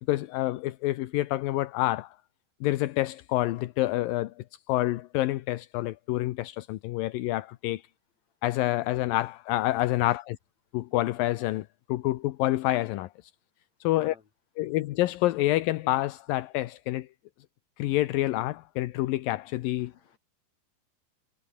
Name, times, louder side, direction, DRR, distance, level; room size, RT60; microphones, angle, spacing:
voice 1, 0.0-2.2 2.6-4.3 4.7-7.8 8.4-10.4 10.7-13.1 13.8-14.2 14.6-17.1 17.8-19.9, left 17 dB, 75° left, 2.3 m, -28 dB
voice 2, 13.9-14.2 19.8-20.2, left 7 dB, 45° left, 3.8 m, -52 dB
omnidirectional pair, 4.7 m